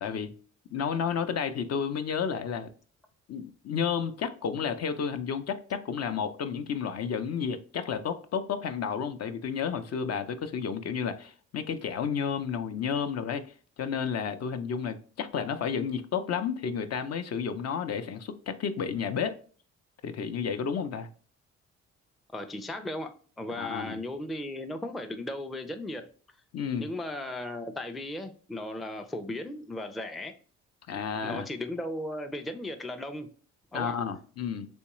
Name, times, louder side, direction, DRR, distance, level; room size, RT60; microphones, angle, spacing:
voice 1, 0.0-0.3 0.7-2.7 3.3-19.4 20.0-21.1 23.6-24.0 26.5-26.9 30.9-31.4 33.7-34.7, left 7 dB, 55° left, 0.6 m, -31 dB
voice 2, 22.3-26.1 26.8-30.4 31.2-33.3 33.7-34.0, left 1 dB, ahead, 0.4 m, -36 dB
3.5 x 3.1 x 2.9 m
cardioid pair, 90°, 30 cm